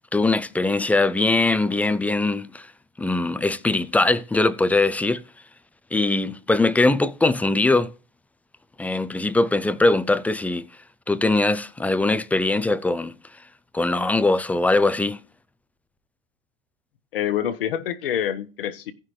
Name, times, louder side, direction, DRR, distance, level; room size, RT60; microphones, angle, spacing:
voice 1, 0.1-2.7 3.0-5.2 5.9-7.9 8.8-10.7 11.1-13.1 13.7-15.2, left 2 dB, 5° left, 0.4 m, -21 dB
voice 2, 17.1-18.9, left 10 dB, 70° left, 1.2 m, -26 dB
16.5 x 5.7 x 3.2 m
hypercardioid pair, 95°, 29 cm